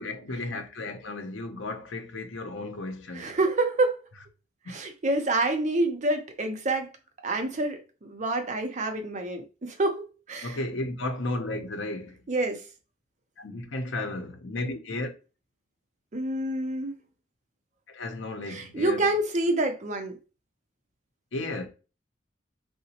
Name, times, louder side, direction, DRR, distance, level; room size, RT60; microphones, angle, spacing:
voice 1, 0.0-3.3 10.4-12.2 13.4-15.1 17.9-19.0 21.3-21.7, left 2 dB, 80° left, 0.7 m, -34 dB
voice 2, 3.1-4.0 4.7-6.9 7.2-10.6 12.3-12.6 16.1-17.0 18.5-20.1, right 2 dB, 40° right, 0.6 m, -27 dB
3.9 x 2.1 x 2.8 m
head